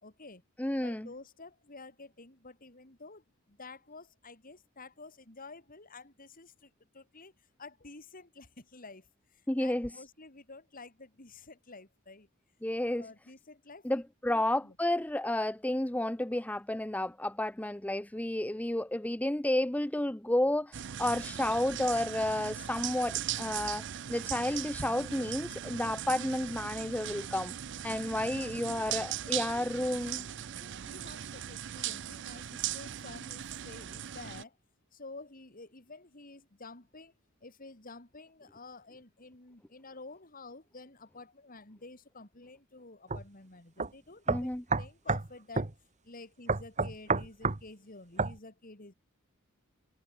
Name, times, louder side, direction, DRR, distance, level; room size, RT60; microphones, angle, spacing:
voice 1, 0.0-0.4 0.8-12.3 12.9-14.0 14.3-14.8 28.0-34.6 34.9-37.1 37.4-45.8 46.0-48.9, left 3 dB, 45° left, 3.3 m, -51 dB
voice 2, 0.6-1.1 9.5-9.9 12.6-13.1 13.8-27.5 27.8-30.3 44.3-44.6, left 1 dB, 5° left, 0.6 m, -31 dB
sound 1, 20.7-34.4, right 10 dB, 60° right, 0.6 m, -39 dB
sound 2, 43.1-43.2 43.8-43.9 44.3-45.3 45.6-45.7 46.5-47.6 48.2-48.4, right 4 dB, 35° right, 1.3 m, -29 dB
head